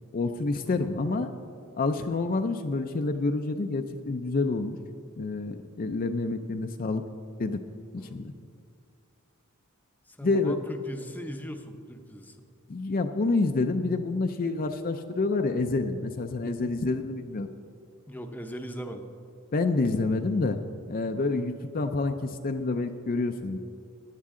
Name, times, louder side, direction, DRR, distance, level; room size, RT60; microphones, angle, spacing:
voice 1, 0.1-1.3 1.8-4.8 5.2-7.0 7.4-7.6 8.1-8.3 10.2-10.6 12.7-17.5 19.5-20.6 20.9-23.6, left 3 dB, 40° left, 6 dB, 0.5 m, -28 dB
voice 2, 10.1-12.4 18.1-19.0 21.2-21.5, equal, 10° left, 5 dB, 0.7 m, -39 dB
15.5 x 10.5 x 3.7 m, 2.5 s
head